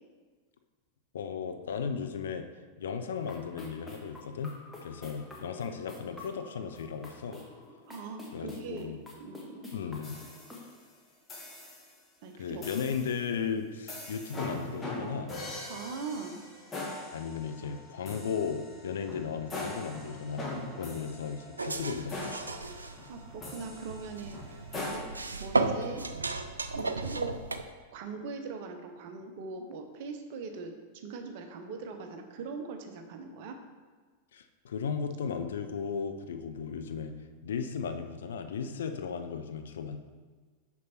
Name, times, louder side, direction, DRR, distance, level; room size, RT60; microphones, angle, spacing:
voice 1, 1.1-2.5 2.8-7.4 8.3-9.0 9.7-10.2 12.4-15.3 17.1-22.6 34.3-37.1 37.4-40.0, left 6 dB, 65° left, 8 dB, 0.5 m, -36 dB
sound 1, 3.1-10.7, left 2 dB, ahead, 1.3 m, -49 dB
voice 2, 7.9-8.9 9.2-9.7 12.2-12.7 15.7-16.4 22.7-25.1 25.4-26.1 26.7-27.4 27.9-33.6, right 4 dB, 50° right, 5 dB, 0.8 m, -41 dB
sound 2, 10.0-10.8 11.3-11.9 12.6-13.2 13.9-25.0, left 2 dB, 20° left, 1.6 m, -41 dB
sound 3, 21.6-27.6, right 3 dB, 80° right, 0.4 m, -34 dB
6.3 x 5.4 x 4.3 m, 1.4 s
figure-of-eight pair, 90°, 0 cm